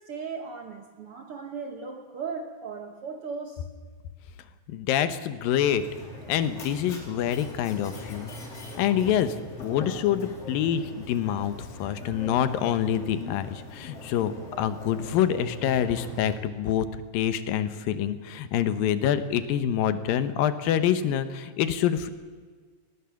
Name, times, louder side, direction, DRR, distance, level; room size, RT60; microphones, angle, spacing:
voice 1, 0.0-3.6, right 5 dB, 60° right, 5 dB, 1.5 m, -37 dB
voice 2, 4.7-5.8 6.3-8.3 8.8-9.3 9.6-11.5 11.8-14.3 14.6-16.9 17.1-22.1, left 10 dB, 80° left, 11 dB, 2.7 m, -26 dB
Mechanisms, 5.6-16.4, left 1 dB, 45° left, 4.0 m, -41 dB
20.0 x 18.5 x 7.1 m, 1.5 s
omnidirectional pair, 4.0 m